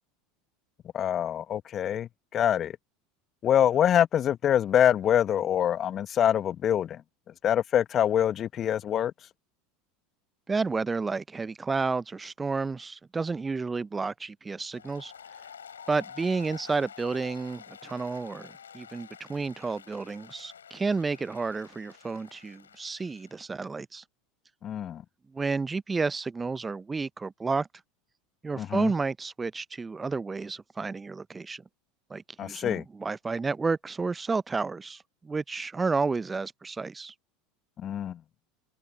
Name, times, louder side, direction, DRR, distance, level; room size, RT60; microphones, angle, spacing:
voice 1, 0.9-2.7 3.4-7.0 7.4-9.1 24.6-25.0 28.6-28.9 32.4-32.8 37.8-38.2, left 10 dB, 40° left, 1.3 m, -25 dB
voice 2, 10.5-15.1 15.9-24.0 25.3-27.7 28.4-31.6 32.1-37.1, right 4 dB, 20° right, 0.6 m, -31 dB
Applause, 14.7-23.4, left 8 dB, 80° left, 3.7 m, -49 dB
figure-of-eight pair, 75°, 0 cm